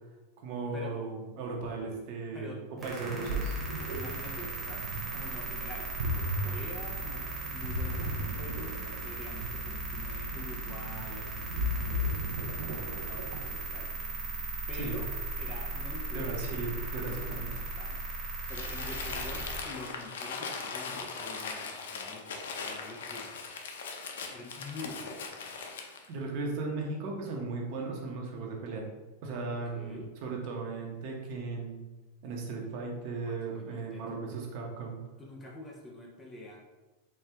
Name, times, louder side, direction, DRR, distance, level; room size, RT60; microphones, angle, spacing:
voice 1, 0.4-2.5 2.8-3.5 14.7-15.0 16.1-17.5 26.1-28.8 29.2-31.8 32.2-35.0, right 3 dB, 45° right, 0 dB, 0.8 m, -36 dB
voice 2, 2.3-3.4 3.8-4.9 5.1-13.9 14.7-15.1 15.4-16.3 17.0-18.0 18.5-23.3 24.3-25.4 29.5-30.1 33.2-34.2 35.2-36.6, left 2 dB, 10° left, -1 dB, 0.5 m, -46 dB
sound 1, 2.8-19.6, right 2 dB, 10° right, 1.1 m, -37 dB
Ocean, 2.8-13.6, equal, 80° right, 0.5 m, -36 dB
Crumpling crinkling, 18.5-26.1, left 4 dB, 90° left, 0.5 m, -39 dB
4.4 x 2.3 x 3.4 m, 1.1 s
supercardioid pair, 155°, 0 cm